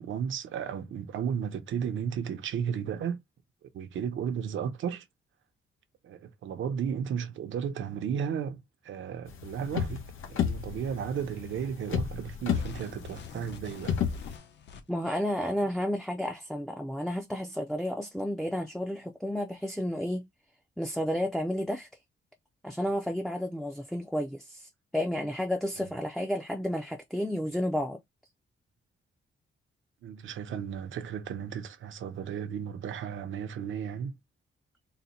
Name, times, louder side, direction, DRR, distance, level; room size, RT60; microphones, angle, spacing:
voice 1, 0.0-3.2 3.6-5.1 6.0-14.0 25.8-25.9 30.0-34.2, right 7 dB, 70° right, 0.7 m, -34 dB
sound 1, 9.3-14.3, left 8 dB, 80° left, 0.9 m, -32 dB
sound 2, 12.5-15.1, left 7 dB, 60° left, 0.7 m, -47 dB
voice 2, 14.9-20.3 20.8-21.9 22.6-28.0, equal, ahead, 0.4 m, -31 dB
4.0 x 2.1 x 4.1 m
wide cardioid pair, 155°, 21 cm